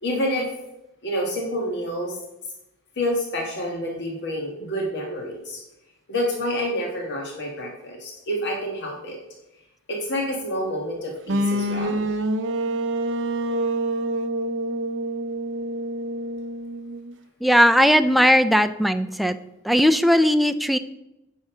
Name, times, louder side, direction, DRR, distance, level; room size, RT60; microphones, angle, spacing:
voice 1, 0.0-0.5 1.0-2.2 3.0-5.6 6.1-9.2 9.9-12.1, equal, 55° left, 0 dB, 1.5 m, -28 dB
sound 1, 11.3-17.1, right 1 dB, 60° right, 0.6 m, -26 dB
voice 2, 17.4-19.4 19.6-20.8, equal, ahead, 8 dB, 0.4 m, -18 dB
9.4 x 5.4 x 6.0 m, 0.91 s
head